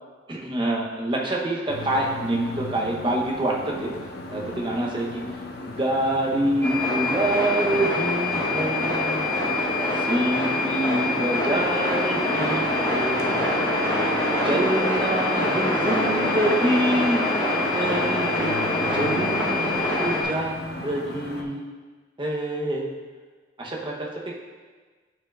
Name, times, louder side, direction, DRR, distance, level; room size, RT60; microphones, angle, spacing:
voice 1, 0.3-3.9 4.3-5.2 5.7-9.3 10.0-13.4 14.4-17.2 17.7-18.5 18.9-21.6 22.2-22.9 23.6-24.3, right 1 dB, 25° right, -1 dB, 0.9 m, -26 dB
traffic from inside an apartment, 1.7-21.4, left 2 dB, 55° left, 0.7 m, -36 dB
sound 1, 6.6-20.2, left 1 dB, 15° left, 1.6 m, -24 dB
10.5 x 4.6 x 2.4 m, 1.4 s
head